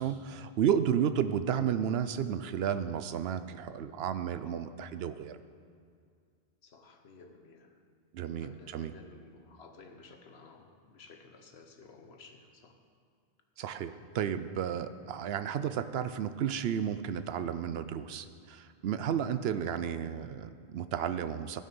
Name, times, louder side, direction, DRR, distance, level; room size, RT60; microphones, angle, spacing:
voice 1, 0.0-5.4 8.1-9.0 13.6-21.6, right 8 dB, 80° right, 12 dB, 0.8 m, -32 dB
voice 2, 6.6-7.7 8.4-12.7, left 3 dB, 90° left, 5 dB, 1.3 m, -54 dB
15.5 x 6.4 x 5.4 m, 2.2 s
omnidirectional pair, 1.0 m